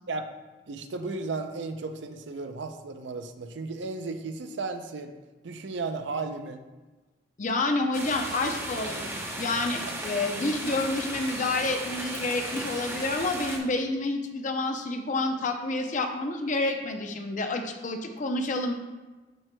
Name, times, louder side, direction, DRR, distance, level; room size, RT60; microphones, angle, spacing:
voice 1, 0.7-5.1 5.4-6.6 8.8-9.1 9.9-10.0, right 3 dB, 85° right, 8 dB, 0.5 m, -35 dB
voice 2, 7.4-18.7, left 2 dB, 45° left, 5 dB, 0.6 m, -29 dB
sound 1, 7.9-13.6, right 1 dB, 15° right, 0.7 m, -35 dB
11.5 x 4.5 x 2.2 m, 1.2 s
head